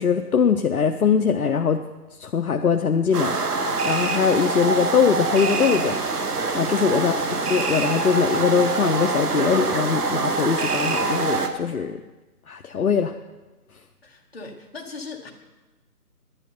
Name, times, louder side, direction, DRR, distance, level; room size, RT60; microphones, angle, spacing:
voice 1, 0.0-1.8 2.2-6.0 6.5-7.1 7.5-12.0 12.5-13.1, left 6 dB, 65° left, 6 dB, 0.7 m, -22 dB
sound 1, 3.1-11.5, right 4 dB, 70° right, 1.4 m, -25 dB
voice 2, 6.9-7.3 14.0-15.3, left 3 dB, 40° left, 1 dB, 1.6 m, -38 dB
11.0 x 9.8 x 5.5 m, 1.1 s
figure-of-eight pair, 170°, 48 cm